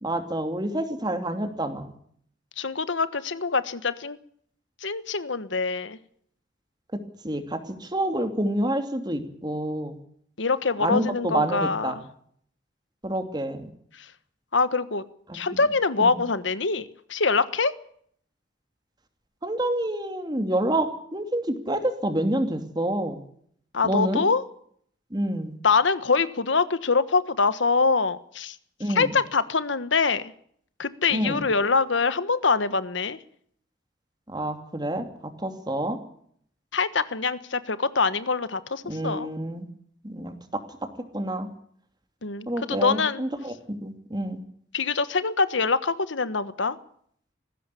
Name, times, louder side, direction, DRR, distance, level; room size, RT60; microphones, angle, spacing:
voice 1, 0.0-1.9 7.2-10.0 10.8-12.0 13.0-13.7 15.3-15.4 16.0-16.2 19.4-23.2 23.8-24.2 25.1-25.6 28.8-29.1 31.1-31.4 34.3-36.0 38.8-39.7 40.0-40.6 41.1-41.5 42.5-44.4, right 1 dB, 20° right, 7 dB, 2.8 m, -28 dB
voice 2, 2.6-4.2 4.8-6.0 10.4-11.9 14.5-15.0 15.3-17.7 23.7-24.4 25.6-28.5 28.9-30.2 30.8-33.2 36.7-39.3 42.2-43.2 44.7-46.8, left 4 dB, 75° left, 14 dB, 1.3 m, -24 dB
19.0 x 16.0 x 8.4 m, 0.63 s
head